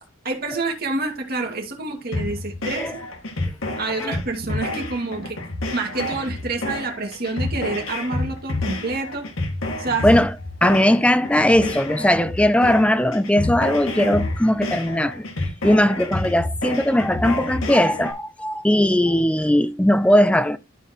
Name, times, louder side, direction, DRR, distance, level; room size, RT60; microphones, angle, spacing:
voice 1, 0.2-2.9 3.8-5.4 5.7-9.3 9.8-10.1, right 3 dB, 50° right, 2.3 m, -28 dB
sound 1, 2.1-18.1, left 2 dB, 85° left, 2.0 m, -29 dB
voice 2, 10.0-10.3 10.6-15.2 15.6-20.6, left 1 dB, 5° left, 0.5 m, -19 dB
12.5 x 4.7 x 3.0 m
head